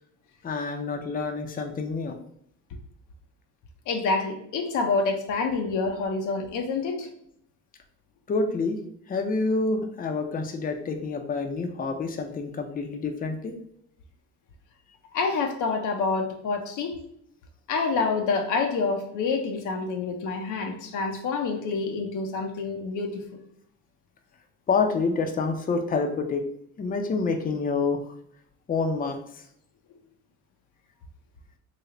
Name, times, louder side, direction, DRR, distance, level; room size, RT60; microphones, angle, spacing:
voice 1, 0.4-2.2 8.3-8.8 9.1-13.5 24.7-26.4 26.8-28.0 28.7-29.4, left 4 dB, 30° left, 5 dB, 0.5 m, -27 dB
voice 2, 3.9-7.1 15.1-17.0 17.7-23.2, left 4 dB, 80° left, 4 dB, 0.6 m, -27 dB
3.2 x 2.1 x 3.6 m, 0.70 s
cardioid pair, 90°, 30 cm